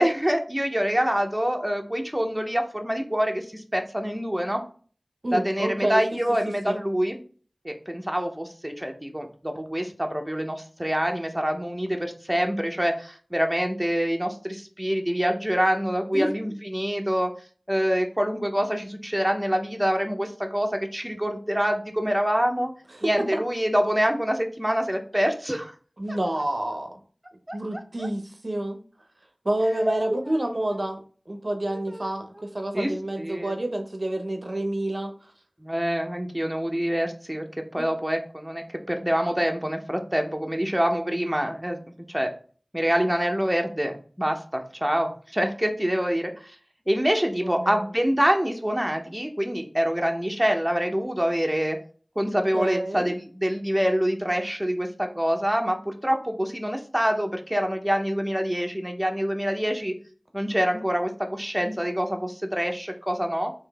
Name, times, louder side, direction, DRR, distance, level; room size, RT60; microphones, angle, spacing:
voice 1, 0.0-4.6 5.3-7.2 7.6-17.3 17.7-22.7 23.0-25.7 26.1-26.2 27.5-27.8 31.9-32.1 32.7-32.9 33.2-33.5 35.6-37.4 37.7-41.8 42.1-42.3 42.7-46.6 46.9-51.8 52.2-60.0 60.3-63.5, equal, 15° right, 3 dB, 0.6 m, -26 dB
voice 2, 5.2-6.0 6.5-6.8 16.1-16.3 22.9-23.4 26.0-27.0 27.5-28.8 29.4-35.1 47.4-47.8 52.3-53.1, right 1 dB, 60° right, 5 dB, 0.5 m, -28 dB
3.7 x 2.7 x 3.3 m, 0.42 s
wide cardioid pair, 40°, 0 cm